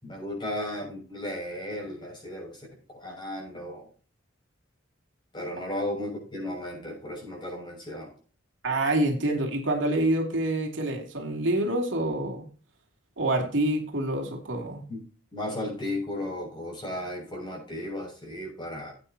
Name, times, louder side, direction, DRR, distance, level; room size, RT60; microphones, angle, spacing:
voice 1, 0.0-3.9 5.3-8.1 14.9-15.0 15.3-18.9, left 1 dB, 25° left, -1 dB, 6.5 m, -35 dB
voice 2, 8.6-12.4 13.2-14.8, right 1 dB, 70° right, 1 dB, 2.9 m, -27 dB
16.5 x 9.2 x 2.9 m, 0.39 s
head